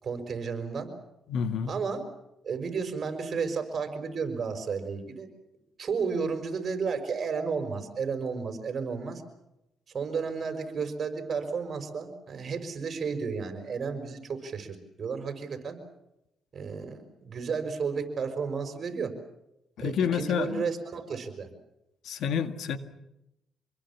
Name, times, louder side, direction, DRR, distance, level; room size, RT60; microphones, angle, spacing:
voice 1, 0.0-0.9 1.7-2.0 2.4-5.3 5.8-9.2 9.9-15.8 16.5-19.1 19.8-21.5, right 5 dB, 45° right, 5.8 m, -32 dB
voice 2, 1.3-1.7 19.8-20.6 22.0-22.8, left 7 dB, 75° left, 2.0 m, -28 dB
27.0 x 21.5 x 7.4 m
cardioid pair, 90°, 0 cm